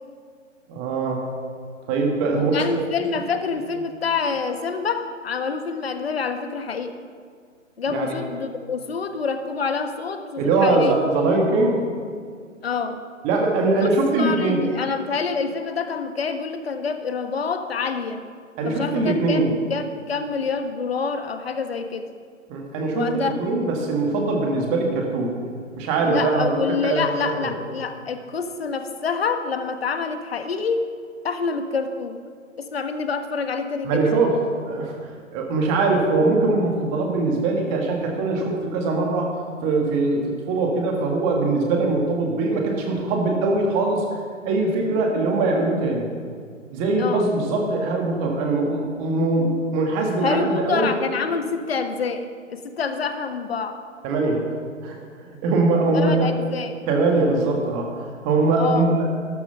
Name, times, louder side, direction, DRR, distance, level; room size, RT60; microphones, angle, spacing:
voice 1, 0.7-1.3 1.9-2.5 7.9-8.1 10.4-11.8 13.2-14.7 18.6-19.5 22.5-25.4 25.8-27.5 33.8-34.4 34.7-35.0 35.3-39.3 39.6-44.0 44.4-46.1 46.7-50.9 54.0-54.5 54.8-56.3 56.9-58.0 58.2-59.1, right 3 dB, 15° right, 1 dB, 1.7 m, -22 dB
voice 2, 2.3-6.9 7.8-10.9 12.6-13.0 13.8-13.9 14.2-18.2 18.6-22.1 22.9-23.4 26.0-30.8 31.2-32.2 32.6-34.0 47.0-47.3 50.2-53.8 55.9-56.8 58.6-58.9, left 5 dB, 50° left, 8 dB, 1.3 m, -27 dB
13.0 x 12.5 x 5.6 m, 2.1 s
figure-of-eight pair, 140°, 39 cm